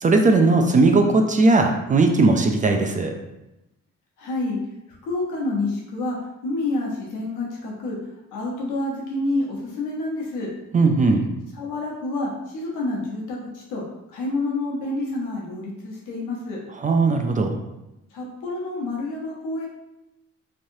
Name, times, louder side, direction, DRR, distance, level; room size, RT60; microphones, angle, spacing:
voice 1, 0.0-3.1 10.7-11.2 16.7-17.5, right 3 dB, 25° right, 4 dB, 0.3 m, -18 dB
voice 2, 4.2-4.6 5.0-6.2 6.4-8.0 8.3-10.5 11.5-13.8 14.1-16.6 18.1-19.7, left 2 dB, 85° left, -3 dB, 1.0 m, -28 dB
3.2 x 2.7 x 2.6 m, 0.93 s
cardioid pair, 90°, 30 cm